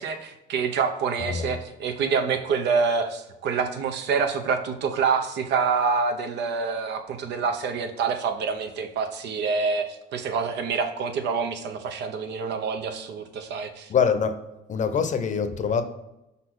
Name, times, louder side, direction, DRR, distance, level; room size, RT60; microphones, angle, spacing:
voice 1, 0.0-13.9, right 5 dB, 75° right, 7 dB, 0.9 m, -26 dB
voice 2, 13.9-14.4 14.7-15.8, left 6 dB, 45° left, 9 dB, 0.7 m, -24 dB
5.5 x 4.2 x 6.2 m, 0.93 s
cardioid pair, 130°, 18 cm